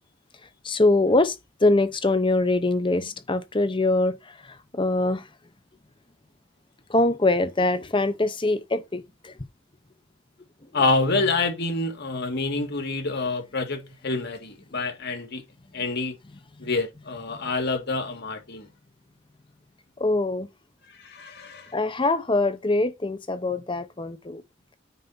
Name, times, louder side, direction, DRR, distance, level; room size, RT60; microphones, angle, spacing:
voice 1, 0.6-1.3 1.6-4.2 4.5-5.2 6.9-9.3 20.0-20.5 21.7-24.4, left 2 dB, 25° left, 0.8 m, -23 dB
voice 2, 10.7-15.4 15.7-16.1 16.6-18.7 21.0-21.7, left 3 dB, 55° left, 2.0 m, -27 dB
9.1 x 4.0 x 5.6 m
head